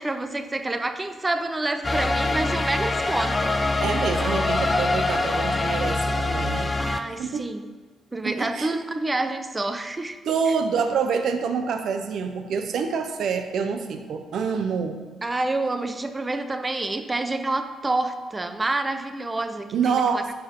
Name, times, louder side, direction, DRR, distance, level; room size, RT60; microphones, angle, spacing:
voice 1, 0.0-3.6 6.8-7.6 8.1-10.2 10.5-10.6 15.2-20.2, right 2 dB, 20° right, 8 dB, 0.7 m, -28 dB
sound 1, 1.8-7.0, left 2 dB, 20° left, 0.7 m, -24 dB
voice 2, 3.8-6.7 7.2-7.4 8.2-8.8 10.3-15.0 19.7-20.3, right 6 dB, 70° right, 7 dB, 0.8 m, -26 dB
10.5 x 4.7 x 5.3 m, 1.4 s
cardioid pair, 90°, 0 cm